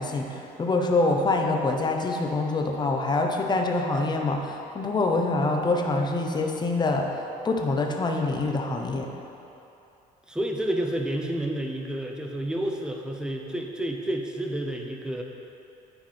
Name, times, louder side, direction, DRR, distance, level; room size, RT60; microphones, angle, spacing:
voice 1, 0.0-9.1, left 2 dB, 25° left, 2 dB, 0.7 m, -25 dB
voice 2, 10.3-15.2, right 1 dB, 5° right, 1 dB, 0.7 m, -30 dB
9.5 x 4.6 x 4.3 m, 2.8 s
cardioid pair, 110°, 17 cm